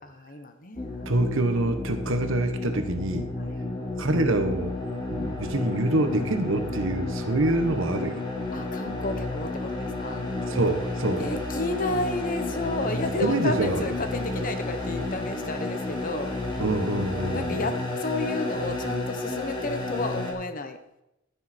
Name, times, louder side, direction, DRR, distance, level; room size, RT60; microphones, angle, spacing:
voice 1, 0.0-1.2 3.4-3.6 8.5-10.3 11.2-16.3 17.3-20.8, left 2 dB, 40° left, 7 dB, 1.2 m, -32 dB
sound 1, 0.8-20.3, left 2 dB, 20° left, 2.7 m, -31 dB
voice 2, 1.0-3.3 4.0-4.7 5.1-8.2 10.5-11.2 13.2-13.8 16.6-17.6, right 2 dB, 65° right, 8 dB, 1.2 m, -26 dB
12.0 x 10.5 x 4.4 m, 0.85 s
head